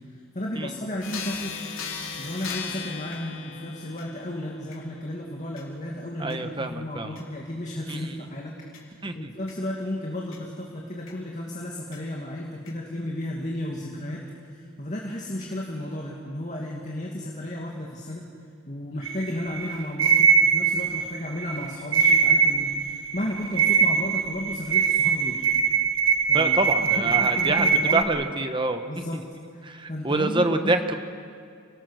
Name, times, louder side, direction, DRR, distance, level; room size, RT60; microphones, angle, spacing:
voice 1, 0.3-1.6 2.2-14.2 14.5-18.2 18.7-25.4 26.3-28.3 28.9-29.2 29.5-29.6 29.9-30.8, left 1 dB, 35° left, -2 dB, 2.4 m, -33 dB
sound 1, 1.0-10.4 11.1-11.2 11.9-12.0 12.7-12.8, left 5 dB, 70° left, 3.6 m, -40 dB
voice 2, 6.2-7.2 7.9-8.1 9.0-9.3 26.3-29.2 29.6-31.0, right 2 dB, 20° right, 7 dB, 1.1 m, -27 dB
sound 2, 19.0-28.0, right 6 dB, 65° right, 1.4 m, -22 dB
30.0 x 19.0 x 6.5 m, 2.3 s
head